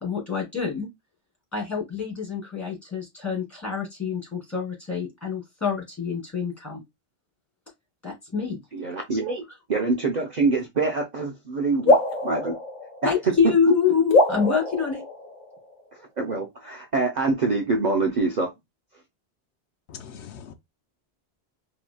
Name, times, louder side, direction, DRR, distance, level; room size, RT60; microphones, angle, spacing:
voice 1, 0.0-0.9 1.5-6.8 8.0-8.6 13.0-15.0, left 6 dB, 15° left, 2.8 m, -26 dB
voice 2, 8.7-9.4 9.7-12.0 12.2-12.6 13.0-13.3 16.2-18.5, right 3 dB, 50° right, 0.6 m, -25 dB
sound 1, 11.9-13.5 14.1-15.8, left 2 dB, 50° left, 1.1 m, -23 dB
voice 3, 19.9-20.5, left 7 dB, 85° left, 0.9 m, -41 dB
4.7 x 2.9 x 2.2 m
omnidirectional pair, 1.1 m